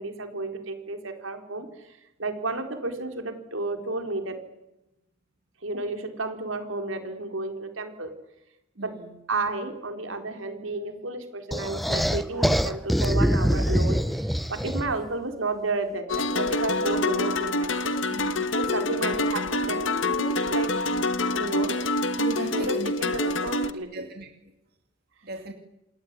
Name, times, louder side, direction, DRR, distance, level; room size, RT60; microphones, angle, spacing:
voice 1, 0.0-4.3 5.6-8.1 8.8-8.9 9.3-18.0 18.6-20.7 21.3-21.7 22.5-24.1, right 2 dB, 80° right, 6 dB, 4.2 m, -32 dB
sound 1, 11.5-15.1, equal, ahead, 0.9 m, -24 dB
sound 2, 16.1-23.7, left 2 dB, 70° left, 1.5 m, -26 dB
voice 2, 18.1-18.6 22.2-22.9 23.2-23.3 23.9-24.3 25.2-25.5, right 2 dB, 50° right, 4 dB, 2.6 m, -36 dB
28.0 x 20.5 x 9.7 m, 0.92 s
head